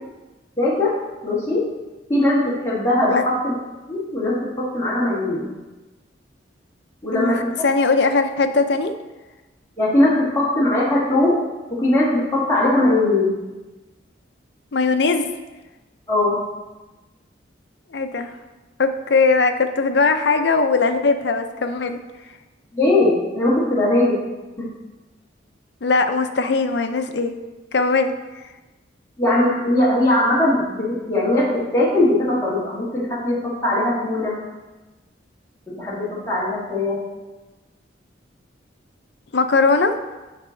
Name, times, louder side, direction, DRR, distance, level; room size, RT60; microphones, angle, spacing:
voice 1, 0.6-1.0 1.2-1.7 2.1-3.5 3.9-5.5 7.0-7.7 9.8-11.4 11.7-13.3 16.1-16.4 22.7-24.2 24.6-24.7 29.2-34.4 35.7-37.0, left 1 dB, 15° left, -7 dB, 1.9 m, -20 dB
voice 2, 7.1-8.9 14.7-15.3 17.9-18.3 18.8-22.0 25.8-27.4 27.7-28.1 39.3-39.9, left 4 dB, 65° left, 7 dB, 0.6 m, -19 dB
7.8 x 4.9 x 3.8 m, 1.1 s
head